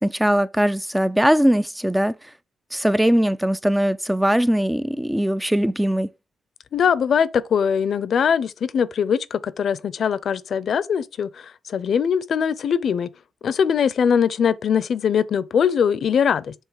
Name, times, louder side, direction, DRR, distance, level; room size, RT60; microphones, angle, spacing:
voice 1, 0.0-2.3 2.7-6.1, equal, 5° right, 0.3 m, -20 dB
voice 2, 6.7-13.1 13.4-16.5, left 7 dB, 60° left, 0.6 m, -21 dB
7.3 x 3.7 x 4.7 m
wide cardioid pair, 140°, 0 cm